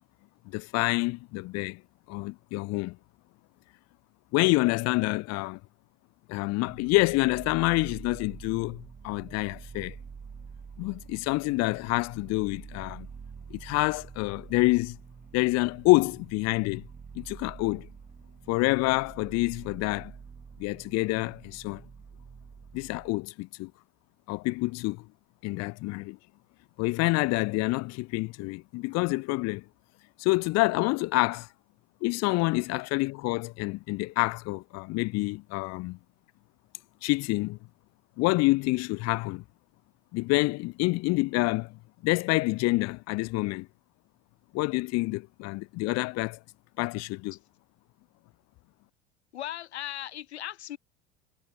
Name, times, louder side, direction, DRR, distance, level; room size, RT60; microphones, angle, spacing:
voice 1, 0.5-1.8 2.1-3.0 4.3-5.6 6.3-9.9 10.8-13.1 13.5-15.0 15.3-16.9 17.1-17.9 18.5-20.1 20.6-21.8 22.7-23.7 24.3-25.0 25.4-26.2 26.8-29.6 30.2-31.5 32.0-36.0 37.0-37.6 38.2-39.4 40.1-43.7 44.5-46.4 46.8-47.4, left 23 dB, 50° left, 1.0 m, -27 dB
sound 1, 6.6-23.1, right 6 dB, 25° right, 2.2 m, -47 dB
voice 2, 49.3-50.8, left 12 dB, 85° left, 0.5 m, -37 dB
figure-of-eight pair, 70°, 32 cm